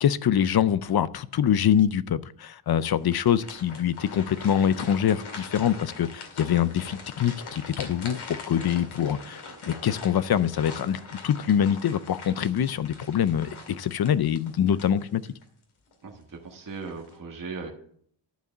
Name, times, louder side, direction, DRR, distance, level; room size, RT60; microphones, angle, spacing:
voice 1, 0.0-15.2, left 9 dB, 50° left, 0.5 m, -24 dB
sound 1, 2.8-15.4 15.9-16.1 16.7-17.1, left 4 dB, 85° left, 2.3 m, -42 dB
voice 2, 16.0-17.7, right 4 dB, 40° right, 1.4 m, -38 dB
11.0 x 4.8 x 7.3 m
wide cardioid pair, 155°, 49 cm